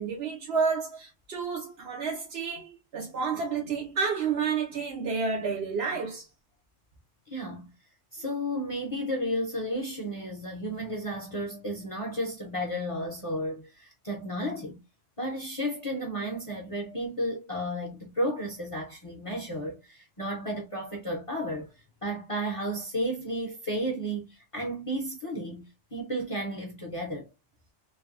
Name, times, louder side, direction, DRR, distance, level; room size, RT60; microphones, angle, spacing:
voice 1, 0.0-6.2, right 5 dB, 60° right, 0.9 m, -30 dB
voice 2, 7.3-7.7 8.1-14.8 15.2-21.7 22.0-27.3, equal, 30° left, 0.7 m, -33 dB
3.2 x 2.2 x 2.4 m
omnidirectional pair, 1.3 m